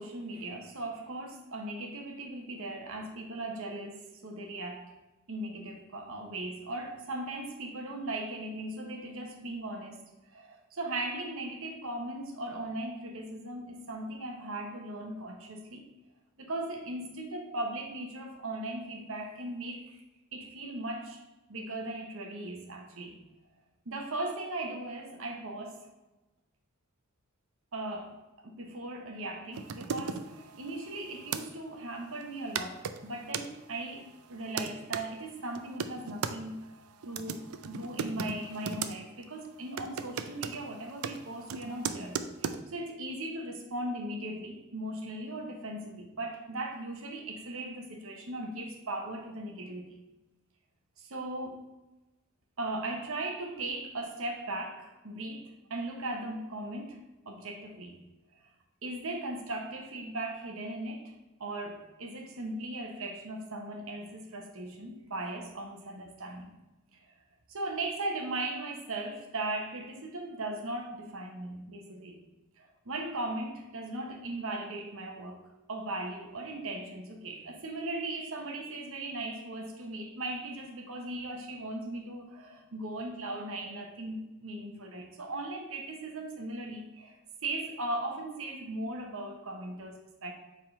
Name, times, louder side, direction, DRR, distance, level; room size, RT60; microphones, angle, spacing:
voice 1, 0.0-4.9 5.3-10.0 10.3-15.8 16.4-20.0 20.3-21.2 21.5-23.2 23.8-25.8 27.7-36.8 37.0-50.0 51.0-51.6 52.6-57.0 57.2-58.1 58.8-66.5 66.9-67.0 67.5-72.2 72.6-75.4 75.7-90.3, right 2 dB, 65° right, 3 dB, 1.1 m, -38 dB
sound 1, 29.5-31.4 32.2-32.3 32.5-33.5 34.1-35.0 35.5-36.4 37.0-38.9 39.2-39.5 39.8-42.6, right 6 dB, 85° right, 0.5 m, -37 dB
7.3 x 3.7 x 5.4 m, 1.1 s
head